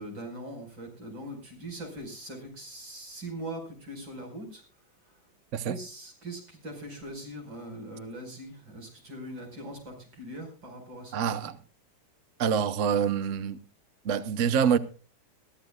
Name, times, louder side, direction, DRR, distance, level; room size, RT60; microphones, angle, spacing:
voice 1, 0.0-4.6 5.7-11.5, right 1 dB, 75° right, 5.9 m, -41 dB
voice 2, 11.1-11.6 12.4-13.6 14.0-14.8, right 7 dB, 55° right, 0.9 m, -26 dB
22.0 x 14.0 x 2.3 m
omnidirectional pair, 2.1 m